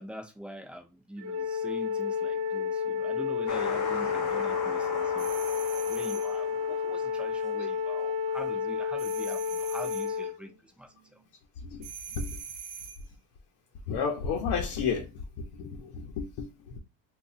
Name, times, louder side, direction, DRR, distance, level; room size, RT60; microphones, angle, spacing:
voice 1, 0.0-11.2, equal, 5° right, 0.4 m, -44 dB
Wind instrument woodwind instrument, 1.2-10.3, left 6 dB, 35° right, 0.8 m, -31 dB
sound 1, 3.5-7.7, left 5 dB, 45° left, 1.0 m, -38 dB
sound 2, 5.2-6.4 9.0-10.2 11.8-13.1, right 8 dB, 70° right, 0.9 m, -43 dB
voice 2, 13.9-16.8, left 6 dB, 70° left, 0.8 m, -32 dB
2.8 x 2.4 x 4.0 m
cardioid pair, 145°, 41 cm